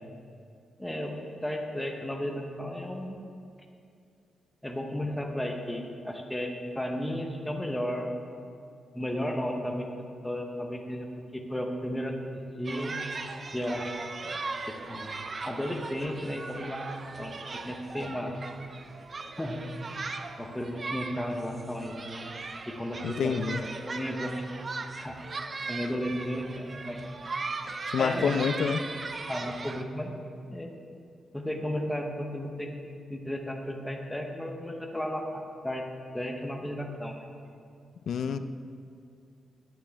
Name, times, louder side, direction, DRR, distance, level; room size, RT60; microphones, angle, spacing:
voice 1, 0.8-1.2 1.4-3.2 4.6-8.1 8.9-9.9 10.2-11.1 11.3-13.0 13.5-13.9 14.7-15.2 15.4-16.8 17.2-17.3 17.6-18.4 19.4-19.6 20.4-22.3 22.7-24.5 25.0-25.2 25.7-27.0 28.0-28.5 29.3-30.1 30.5-30.7 31.3-32.7 33.1-35.8 36.1-37.3, equal, 5° left, 3 dB, 0.7 m, -34 dB
sound 1, 12.6-29.8, right 3 dB, 30° right, 0.4 m, -38 dB
voice 2, 23.0-23.6 27.9-28.8 38.1-38.4, left 6 dB, 65° left, 11 dB, 0.3 m, -27 dB
9.8 x 9.0 x 3.4 m, 2.4 s
wide cardioid pair, 160°, 0 cm